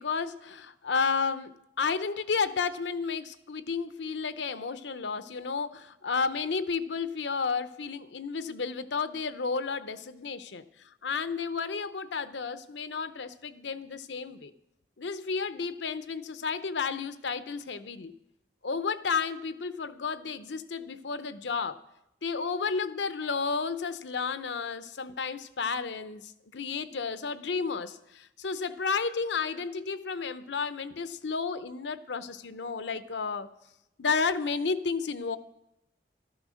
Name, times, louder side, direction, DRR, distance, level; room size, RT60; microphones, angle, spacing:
voice 1, 0.0-1.5 1.8-10.6 11.0-14.5 15.0-18.1 18.6-21.8 22.2-33.5 34.0-35.4, left 5 dB, 85° left, 13 dB, 0.8 m, -32 dB
13.5 x 13.0 x 6.3 m, 0.86 s
head